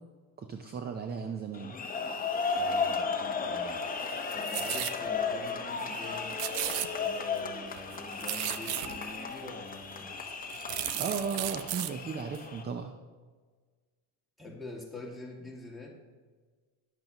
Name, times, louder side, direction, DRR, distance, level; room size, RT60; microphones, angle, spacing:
voice 1, 0.4-1.8 10.9-12.9, right 6 dB, 20° right, 6 dB, 0.5 m, -35 dB
sound 1, 1.5-12.6, left 5 dB, 20° left, 0.8 m, -35 dB
voice 2, 2.5-3.8 4.3-6.4 6.9-10.1 14.4-15.9, left 2 dB, ahead, -1 dB, 1.9 m, -45 dB
sound 2, 4.0-5.0 5.5-5.6 5.8-6.1 6.3-7.4 7.7-9.2 9.8-9.9 10.3-11.9 12.3-12.4, right 13 dB, 75° right, 0.7 m, -35 dB
11.0 x 7.7 x 2.9 m, 1.5 s
supercardioid pair, 110°, 46 cm